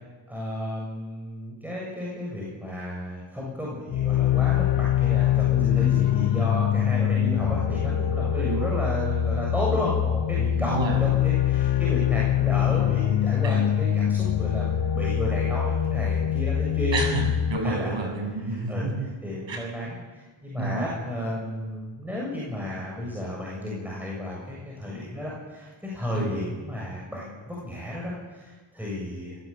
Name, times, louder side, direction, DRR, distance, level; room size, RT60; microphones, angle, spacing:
voice 1, 0.3-17.0 17.6-18.0 18.4-20.0 20.4-29.4, left 1 dB, 5° right, -5 dB, 7.3 m, -32 dB
sound 1, 3.9-17.6, left 10 dB, 55° left, 0.8 m, -24 dB
voice 2, 10.5-11.0 13.4-13.6 16.9-19.1 19.5-19.6 20.6-20.9 26.1-26.3, right 3 dB, 65° right, 2 dB, 7.9 m, -29 dB
28.5 x 16.5 x 8.7 m, 1.4 s
wide cardioid pair, 110°, 48 cm